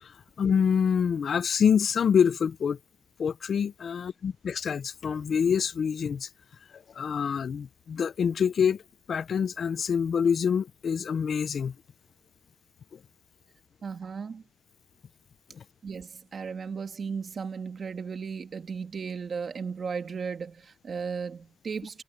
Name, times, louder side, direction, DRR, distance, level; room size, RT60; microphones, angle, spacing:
voice 1, 0.0-2.8 3.2-6.3 6.7-8.8 9.1-11.7 12.9-13.0 15.5-15.6, left 7 dB, 55° left, 0.7 m, -26 dB
voice 2, 13.8-14.4 15.8-22.0, right 5 dB, 45° right, 2.1 m, -35 dB
cardioid pair, 95°, 0 cm